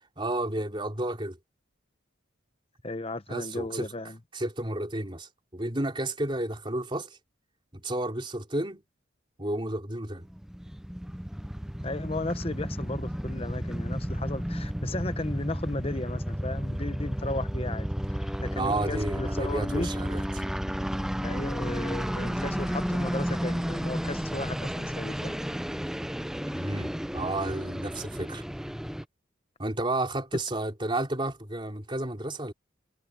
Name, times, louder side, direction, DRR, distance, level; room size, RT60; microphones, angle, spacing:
voice 1, 0.0-1.4 3.3-3.9 4.3-7.2 7.7-8.8 9.4-10.3 18.5-20.5 26.5-28.5 29.6-32.5, right 1 dB, 25° right, 3.6 m, -31 dB
voice 2, 2.8-4.2 11.8-19.9 21.2-25.4, left 2 dB, 30° left, 1.1 m, -35 dB
sound 1, 10.2-29.0, equal, 5° right, 0.5 m, -32 dB
head